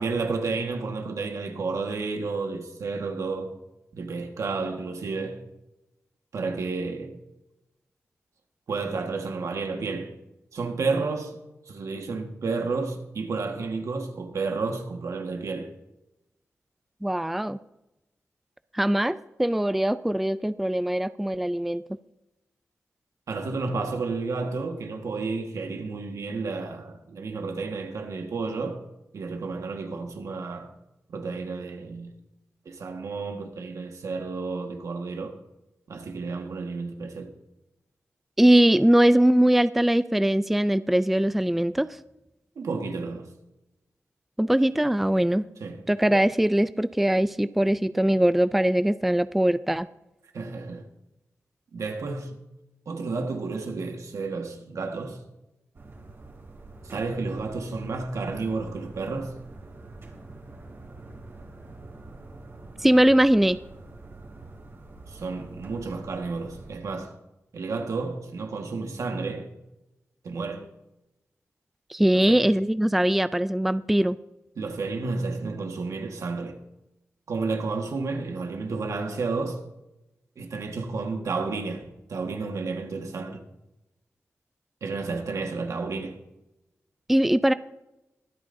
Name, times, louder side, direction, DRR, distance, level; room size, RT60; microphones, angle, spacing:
voice 1, 0.0-3.6 3.9-5.4 6.3-7.2 8.7-10.1 10.5-11.4 11.7-15.7 23.3-28.8 29.1-30.7 31.1-32.1 32.6-35.4 35.9-37.3 42.5-43.3 45.6-45.8 50.3-50.9 51.7-52.4 52.8-55.2 56.8-59.4 65.1-67.2 67.5-69.5 70.2-70.7 72.1-72.4 74.6-76.6 77.3-79.6 80.4-83.4 84.8-86.2, right 4 dB, 85° right, 1.5 m, -31 dB
voice 2, 17.0-17.6 18.7-21.8 38.4-41.9 44.4-45.4 45.9-49.9 62.8-63.6 71.9-74.2 87.1-87.5, right 1 dB, 5° right, 0.3 m, -21 dB
sound 1, 55.7-66.8, right 2 dB, 55° right, 2.7 m, -45 dB
23.0 x 9.0 x 2.6 m
wide cardioid pair, 95°, 5 cm